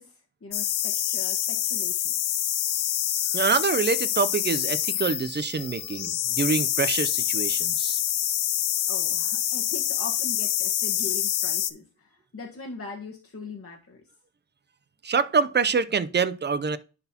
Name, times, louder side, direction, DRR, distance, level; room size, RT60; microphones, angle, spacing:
voice 1, 0.0-2.1 8.9-14.0, left 4 dB, 30° left, 1.3 m, -41 dB
sound 1, 0.5-11.7, left 11 dB, 80° left, 0.7 m, -26 dB
voice 2, 3.3-8.0 15.0-16.8, right 5 dB, 25° right, 0.5 m, -26 dB
10.5 x 4.1 x 2.8 m
cardioid pair, 90°, 44 cm